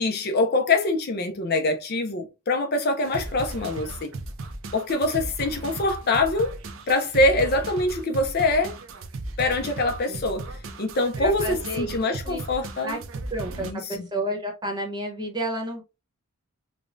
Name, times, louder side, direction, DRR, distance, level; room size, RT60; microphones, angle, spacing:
voice 1, 0.0-4.1 4.7-6.6 6.9-8.8 9.4-10.4 10.8-13.0 13.5-14.1, left 2 dB, 45° left, 0.5 m, -24 dB
sound 1, 3.0-13.7, right 2 dB, 60° right, 0.5 m, -36 dB
voice 2, 11.2-12.4 12.8-13.0 13.3-15.8, right 1 dB, 20° right, 0.9 m, -31 dB
5.2 x 2.2 x 2.5 m
head